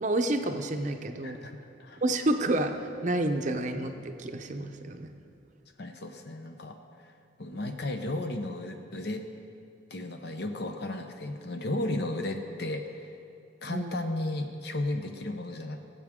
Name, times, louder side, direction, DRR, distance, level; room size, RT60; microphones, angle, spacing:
voice 1, 0.0-1.4 2.0-5.1 13.7-13.9, right 1 dB, 40° right, 6 dB, 0.6 m, -29 dB
voice 2, 1.2-2.0 5.8-7.1 7.4-9.3 9.9-13.2 13.6-15.8, left 1 dB, 55° left, 5 dB, 0.7 m, -34 dB
18.0 x 8.2 x 3.6 m, 2.7 s
head